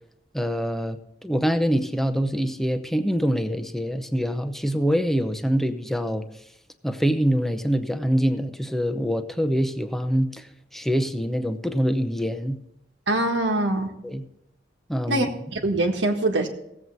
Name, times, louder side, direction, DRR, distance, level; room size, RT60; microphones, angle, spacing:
voice 1, 0.3-1.0 1.2-6.2 6.8-10.4 10.7-12.6 14.0-14.2 14.9-15.3, equal, ahead, 8 dB, 0.7 m, -24 dB
voice 2, 13.1-13.9 15.1-16.5, right 2 dB, 75° right, 4 dB, 1.5 m, -23 dB
17.0 x 7.8 x 4.0 m, 0.82 s
head